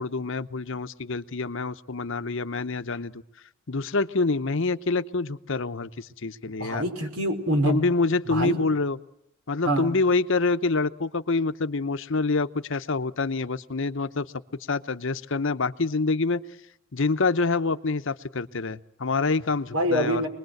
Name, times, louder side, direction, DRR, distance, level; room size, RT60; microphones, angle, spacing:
voice 1, 0.0-3.2 3.7-6.8 7.7-9.0 9.5-14.3 14.7-16.4 16.9-20.2, left 3 dB, 60° left, 12 dB, 0.9 m, -26 dB
voice 2, 6.6-7.8 8.2-8.6 9.7-9.9 19.7-20.3, right 1 dB, 85° right, 6 dB, 4.8 m, -25 dB
26.5 x 21.0 x 7.9 m, 0.83 s
head